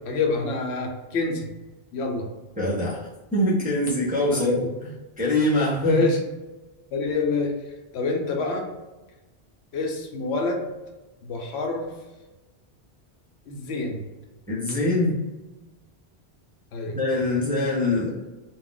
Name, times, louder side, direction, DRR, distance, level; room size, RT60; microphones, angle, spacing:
voice 1, 0.0-1.5 1.9-2.3 4.3-4.7 5.8-6.2 6.9-7.5 7.9-8.7 9.7-10.7 11.2-11.9 13.5-14.1 16.7-17.0, left 3 dB, 80° left, 2 dB, 0.9 m, -26 dB
voice 2, 2.6-4.6 5.2-6.1 14.5-15.2 16.9-18.1, left 1 dB, 10° right, -6 dB, 0.5 m, -23 dB
2.4 x 2.1 x 3.8 m, 1.1 s
omnidirectional pair, 1.1 m